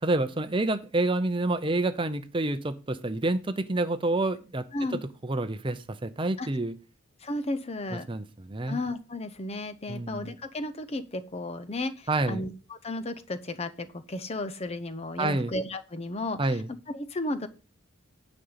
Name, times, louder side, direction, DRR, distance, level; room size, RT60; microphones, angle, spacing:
voice 1, 0.0-4.6 5.2-6.7 8.1-8.8 9.9-10.3 12.1-12.4 15.2-15.5 16.4-16.7, right 2 dB, 25° right, 11 dB, 0.6 m, -28 dB
voice 2, 7.2-8.1 8.7-16.6 16.9-17.5, left 2 dB, 30° left, 10 dB, 0.7 m, -34 dB
9.8 x 5.2 x 5.7 m, 0.33 s
head